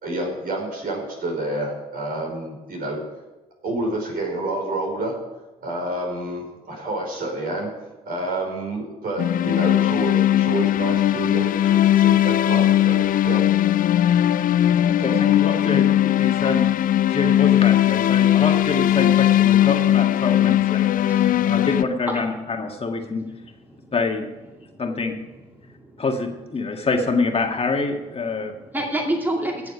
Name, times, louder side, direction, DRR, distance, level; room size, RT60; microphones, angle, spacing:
voice 1, 0.0-3.0 3.6-5.2 5.6-7.7 8.0-13.4, right 1 dB, 55° right, 0 dB, 5.0 m, -28 dB
sound 1, 9.2-21.8, left 12 dB, 50° left, 0.4 m, -18 dB
voice 2, 14.9-16.7 17.1-20.8 21.5-23.2 23.9-24.3 24.8-25.1 26.0-28.5, left 3 dB, 30° left, 3 dB, 1.8 m, -25 dB
voice 3, 21.0-21.5 22.1-22.4 23.8-23.9 24.7-24.8 25.8-25.9 28.3-29.7, right 1 dB, 10° right, 1 dB, 2.3 m, -28 dB
17.5 x 7.1 x 5.1 m, 1.1 s
hypercardioid pair, 50°, 18 cm